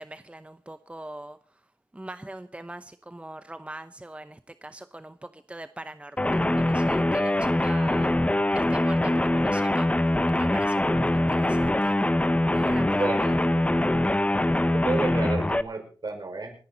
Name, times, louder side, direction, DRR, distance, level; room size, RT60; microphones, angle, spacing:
voice 1, 0.0-1.6 1.9-8.1 8.5-9.9 10.4-12.0 12.4-13.4, right 1 dB, 15° right, 11 dB, 0.8 m, -41 dB
sound 1, 6.2-15.6, left 1 dB, 15° left, 0.9 m, -23 dB
voice 2, 12.9-13.6 14.7-16.5, right 3 dB, 60° right, 4 dB, 5.6 m, -31 dB
27.5 x 10.5 x 4.0 m, 0.41 s
wide cardioid pair, 80°, 8 cm